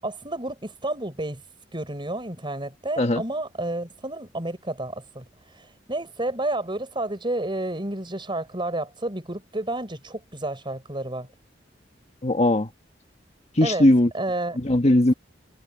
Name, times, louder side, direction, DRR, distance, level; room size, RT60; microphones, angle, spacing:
voice 1, 0.0-1.4 1.7-5.2 5.9-11.3 13.6-13.9 14.1-14.6, right 2 dB, 25° right, 5.6 m, -30 dB
voice 2, 12.2-12.7 13.5-14.1 14.5-15.1, left 1 dB, 35° left, 1.4 m, -19 dB
head